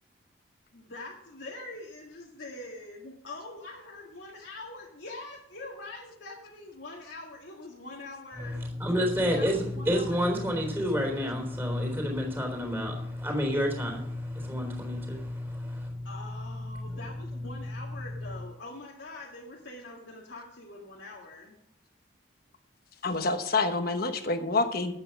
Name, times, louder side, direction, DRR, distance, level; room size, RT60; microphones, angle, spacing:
voice 1, 0.7-8.6 9.3-10.7 16.0-21.6, left 2 dB, 65° left, 1.9 m, -44 dB
voice 2, 8.4-16.1 16.7-17.0 17.4-17.5, equal, 10° right, 3.7 m, -29 dB
voice 3, 23.0-24.9, left 3 dB, 50° left, 1.2 m, -27 dB
11.5 x 9.0 x 6.0 m
head